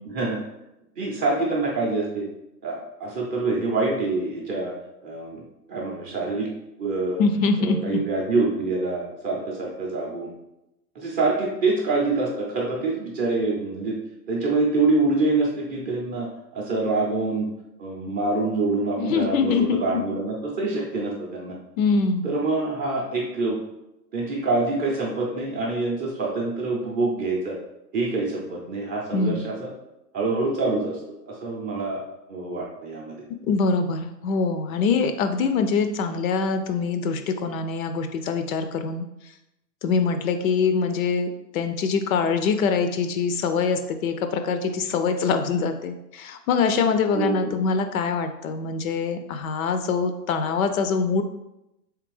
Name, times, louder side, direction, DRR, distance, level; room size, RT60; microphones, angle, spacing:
voice 1, 0.1-0.4 1.0-2.3 2.6-4.7 5.0-6.5 6.8-7.2 7.6-10.3 10.9-14.0 14.3-16.3 16.5-17.5 17.8-21.5 22.2-23.6 24.1-27.6 27.9-29.7 30.1-31.0 31.3-32.0 32.3-33.2 47.1-47.6, right 3 dB, 20° right, -3 dB, 0.5 m, -26 dB
voice 2, 7.2-7.8 19.0-20.0 21.8-22.3 29.1-29.4 33.3-39.0 39.8-51.2, left 5 dB, 60° left, 8 dB, 0.5 m, -24 dB
3.5 x 3.3 x 3.2 m, 0.90 s
hypercardioid pair, 125°, 49 cm